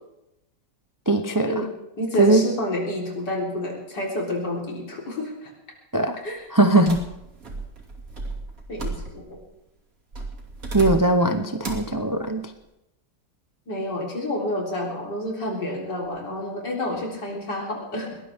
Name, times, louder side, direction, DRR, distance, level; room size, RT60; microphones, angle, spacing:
voice 1, 1.1-1.5 2.2-2.4 5.9-6.2 6.5-7.0 10.7-12.4, right 2 dB, 30° right, 6 dB, 0.3 m, -20 dB
voice 2, 2.0-5.5 6.2-6.5 8.7-9.4 13.7-18.2, left 1 dB, 70° left, -2 dB, 4.4 m, -29 dB
sound 1, 6.9-9.4 10.1-11.2 11.6-12.0, right 3 dB, 50° right, 3.0 m, -34 dB
21.0 x 19.0 x 3.6 m, 0.88 s
omnidirectional pair, 2.0 m